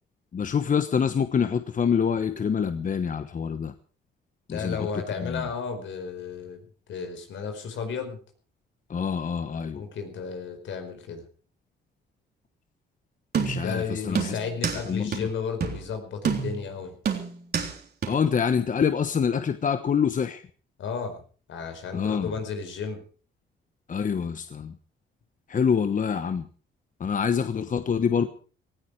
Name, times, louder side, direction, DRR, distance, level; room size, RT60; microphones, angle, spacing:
voice 1, 0.3-3.7 4.5-5.5 8.9-9.8 13.4-14.4 14.9-15.3 18.1-20.5 21.9-22.4 23.9-24.8 25.5-26.5 27.0-28.3, left 6 dB, 40° left, 10 dB, 1.2 m, -26 dB
voice 2, 4.5-6.6 6.9-8.2 9.7-11.2 13.6-16.9 20.8-21.2 21.5-23.0, left 5 dB, 70° left, 7 dB, 4.9 m, -33 dB
sound 1, 13.3-13.8 14.2-14.8 15.1-15.2 15.6-15.8 16.2-16.7 17.1-17.7 18.0-18.1, right 6 dB, 55° right, 3.6 m, -28 dB
18.0 x 15.5 x 4.8 m, 0.40 s
cardioid pair, 90°, 20 cm